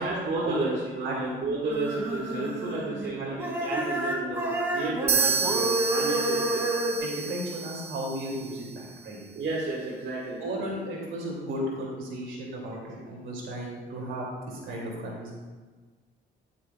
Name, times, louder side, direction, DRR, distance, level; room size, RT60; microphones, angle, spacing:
voice 1, 0.0-6.7 9.3-10.4, right 3 dB, 65° right, -5 dB, 1.7 m, -32 dB
sound 1, 1.7-3.1 3.4-7.0, right 1 dB, 10° right, 2.1 m, -29 dB
sound 2, 5.1-8.8, right 6 dB, 30° right, 0.5 m, -30 dB
voice 2, 7.0-9.2 10.4-15.3, right 1 dB, 80° right, -2 dB, 2.6 m, -35 dB
12.5 x 7.4 x 2.3 m, 1.4 s
cardioid pair, 90°, 20 cm